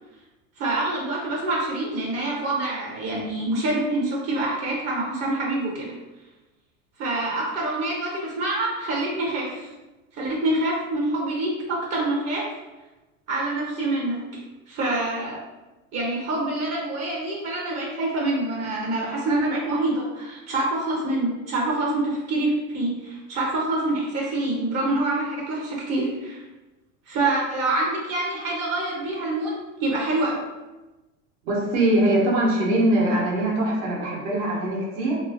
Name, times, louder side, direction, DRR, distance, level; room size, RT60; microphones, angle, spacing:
voice 1, 0.6-5.9 7.0-9.7 10.1-12.4 13.3-14.2 14.7-15.4 15.9-26.4 27.1-30.4, right 2 dB, 40° right, -3 dB, 0.8 m, -26 dB
voice 2, 31.4-35.2, right 1 dB, 70° right, -3 dB, 1.2 m, -22 dB
3.0 x 2.6 x 2.5 m, 1.1 s
supercardioid pair, 120°, 39 cm